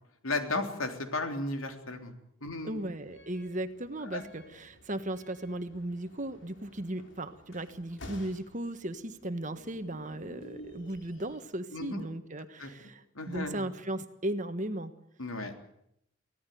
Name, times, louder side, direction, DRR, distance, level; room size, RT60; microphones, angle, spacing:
voice 1, 0.2-2.1 2.4-2.8 4.0-4.3 11.7-12.0 12.6-12.7 13.2-13.7 15.2-15.7, left 2 dB, 85° left, 5 dB, 3.5 m, -34 dB
sound 1, 2.6-11.4, equal, 60° left, 3.9 m, -52 dB
voice 2, 2.6-14.9, right 1 dB, 35° right, 9 dB, 1.5 m, -36 dB
25.0 x 17.0 x 9.4 m, 0.77 s
head